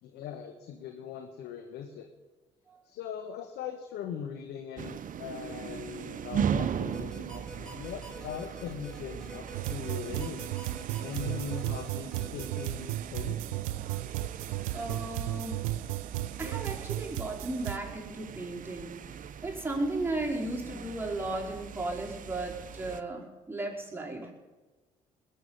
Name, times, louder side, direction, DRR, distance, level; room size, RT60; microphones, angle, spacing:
voice 1, 0.0-2.1 2.8-10.5 11.0-13.4, left 8 dB, 70° left, 6 dB, 1.3 m, -40 dB
sound 1, 4.8-23.0, right 8 dB, 50° right, 0.9 m, -39 dB
sound 2, 6.9-12.6, equal, 5° left, 3.9 m, -46 dB
sound 3, 9.5-17.8, right 15 dB, 85° right, 0.5 m, -35 dB
voice 2, 14.7-15.7 16.4-24.3, right 2 dB, 10° right, -2 dB, 4.7 m, -35 dB
20.0 x 7.4 x 8.9 m, 1.2 s
hypercardioid pair, 55°, 17 cm